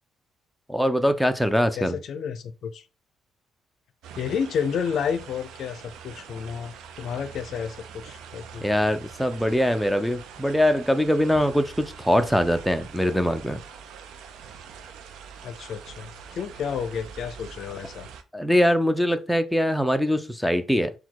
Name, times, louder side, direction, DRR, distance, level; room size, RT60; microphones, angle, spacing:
voice 1, 0.7-2.0 8.6-13.6 18.3-20.9, equal, ahead, 0.5 m, -22 dB
voice 2, 1.8-2.9 4.1-8.7 15.4-18.1, left 7 dB, 65° left, 0.5 m, -31 dB
sound 1, 4.0-18.2, right 7 dB, 80° right, 0.5 m, -44 dB
3.8 x 2.3 x 4.5 m
supercardioid pair, 75°, 0 cm